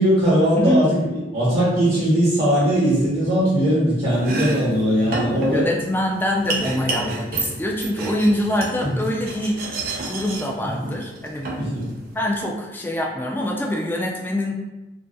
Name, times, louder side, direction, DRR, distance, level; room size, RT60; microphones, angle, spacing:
voice 1, 0.0-5.7 8.8-9.1 10.6-10.9 11.5-11.9, equal, 35° right, -10 dB, 0.9 m, -20 dB
Domestic sounds home sounds, 4.1-12.3, right 2 dB, 55° right, 0.4 m, -30 dB
voice 2, 5.4-9.6 10.0-11.5 12.1-14.6, left 1 dB, 10° left, -2 dB, 0.3 m, -24 dB
2.6 x 2.3 x 2.3 m, 1.0 s
head